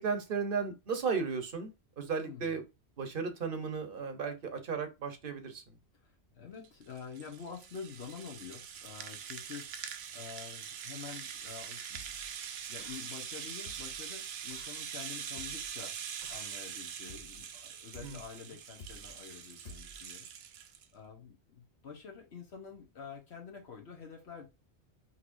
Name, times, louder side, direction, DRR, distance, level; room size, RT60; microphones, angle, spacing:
voice 1, 0.0-2.6 3.0-5.8 18.0-18.2, right 5 dB, 55° right, 1.1 m, -35 dB
voice 2, 2.2-2.5 5.9-12.0 12.7-15.9 16.3-20.3 20.5-20.7 20.9-24.5, left 6 dB, 70° left, 1.3 m, -48 dB
Rattle (instrument), 6.6-20.9, right 8 dB, 70° right, 0.8 m, -43 dB
sound 1, 11.9-12.4 12.8-13.2 13.6-14.1 14.5-14.8 15.4-15.8 16.2-16.6 17.1-17.5 17.9-18.4 18.8-19.2 19.6-20.1, left 1 dB, 45° left, 0.8 m, -52 dB
5.8 x 3.0 x 2.5 m
omnidirectional pair, 1.1 m